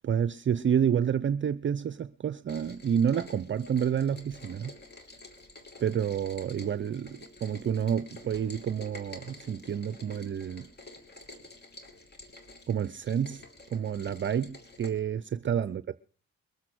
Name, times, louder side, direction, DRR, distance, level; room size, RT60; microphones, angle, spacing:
voice 1, 0.0-4.7 5.8-10.7 12.7-13.4 13.7-16.0, right 8 dB, 40° right, 0.6 m, -29 dB
Rain, 2.5-14.9, left 2 dB, 35° left, 3.3 m, -50 dB
22.0 x 8.3 x 6.2 m
cardioid pair, 90°, 30 cm